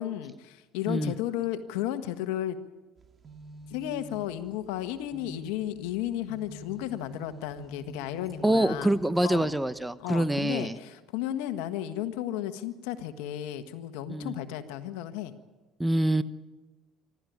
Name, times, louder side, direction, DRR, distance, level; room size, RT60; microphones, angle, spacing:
voice 1, 0.0-2.6 3.7-8.9 9.2-9.5 10.0-15.3, left 12 dB, 85° left, 10 dB, 1.5 m, -33 dB
sound 1, 3.0-9.9, right 1 dB, 35° right, 2.1 m, -48 dB
voice 2, 8.4-10.8 14.1-14.3 15.8-16.2, right 1 dB, 5° right, 13 dB, 1.0 m, -25 dB
26.0 x 13.5 x 9.5 m, 1.2 s
supercardioid pair, 90°, 0 cm